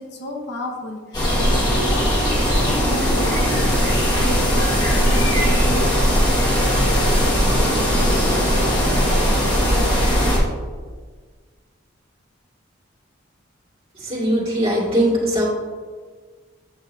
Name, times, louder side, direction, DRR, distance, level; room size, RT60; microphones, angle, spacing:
voice 1, 0.0-5.9, left 1 dB, 60° left, 0 dB, 1.1 m, -32 dB
sound 1, 1.1-10.4, equal, 25° left, 1.8 m, -18 dB
voice 2, 14.0-15.4, equal, 30° right, -6 dB, 2.1 m, -20 dB
8.7 x 6.5 x 2.7 m, 1.5 s
head